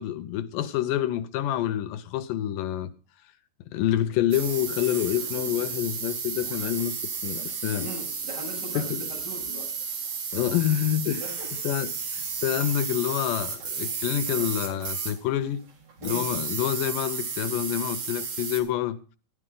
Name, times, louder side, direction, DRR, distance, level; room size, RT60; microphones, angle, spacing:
voice 1, 0.0-2.9 3.7-7.9 8.7-9.1 10.3-11.2 11.6-15.6 16.0-19.0, left 12 dB, 80° left, 2.3 m, -27 dB
sound 1, 4.3-15.2 15.9-18.6, right 6 dB, 55° right, 3.5 m, -33 dB
voice 2, 7.8-9.7 11.2-11.5 16.0-16.2, equal, 30° right, 7.7 m, -39 dB
15.5 x 11.0 x 3.7 m
omnidirectional pair, 3.9 m